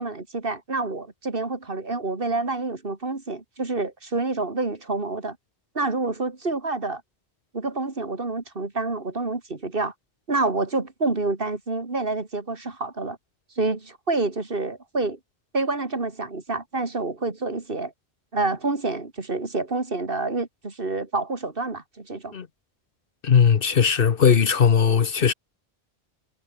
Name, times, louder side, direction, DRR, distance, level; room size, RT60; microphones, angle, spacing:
voice 1, 0.0-5.4 5.7-7.0 7.5-9.9 10.3-13.2 13.6-15.2 15.5-17.9 18.3-22.4, right 3 dB, 55° right, 2.7 m, -28 dB
voice 2, 23.2-25.3, left 7 dB, 55° left, 1.1 m, -18 dB
omnidirectional pair, 1.1 m